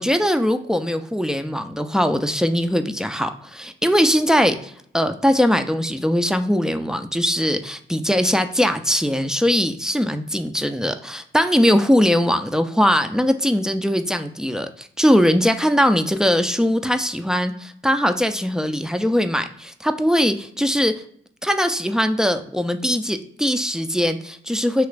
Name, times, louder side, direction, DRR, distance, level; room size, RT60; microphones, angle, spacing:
voice 1, 0.0-21.0 21.4-24.9, equal, 5° right, 8 dB, 0.3 m, -20 dB
3.0 x 2.4 x 3.2 m, 0.64 s
cardioid pair, 60°, 20 cm